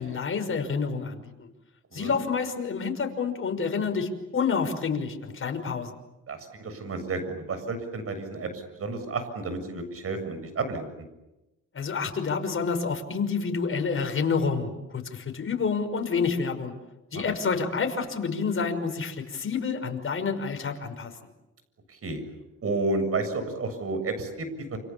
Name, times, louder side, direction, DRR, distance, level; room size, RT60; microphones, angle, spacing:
voice 1, 0.0-1.5 1.9-5.9 11.7-16.7 17.1-21.1, left 5 dB, 45° left, 5 dB, 5.8 m, -28 dB
voice 2, 6.3-8.5 8.8-10.9 17.1-17.2 21.9-22.2 22.6-24.8, right 3 dB, 50° right, 9 dB, 7.3 m, -31 dB
28.5 x 28.5 x 7.2 m, 0.98 s
cardioid pair, 90°, 30 cm